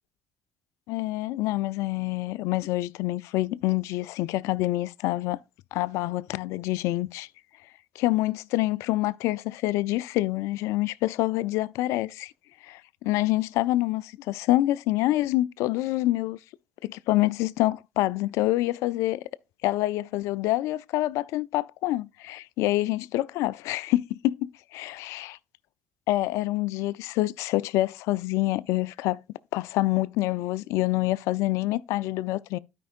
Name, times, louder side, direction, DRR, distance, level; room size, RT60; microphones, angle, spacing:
voice 1, 0.9-5.4 5.7-7.3 8.0-12.3 12.6-16.4 16.8-19.2 19.6-25.3 26.1-29.2 29.5-32.6, left 17 dB, 75° left, 0.4 m, -26 dB
12.5 x 5.3 x 2.4 m
hypercardioid pair, 60°, 5 cm